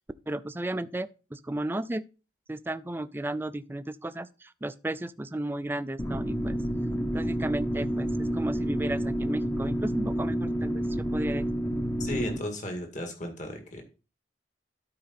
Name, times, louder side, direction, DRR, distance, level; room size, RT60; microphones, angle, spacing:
voice 1, 0.3-2.0 2.5-6.6 7.1-11.5, right 1 dB, 10° right, 0.4 m, -34 dB
sound 1, 6.0-12.4, equal, 15° left, 0.8 m, -29 dB
voice 2, 12.0-13.8, left 1 dB, 45° left, 2.0 m, -35 dB
12.5 x 4.8 x 4.3 m
head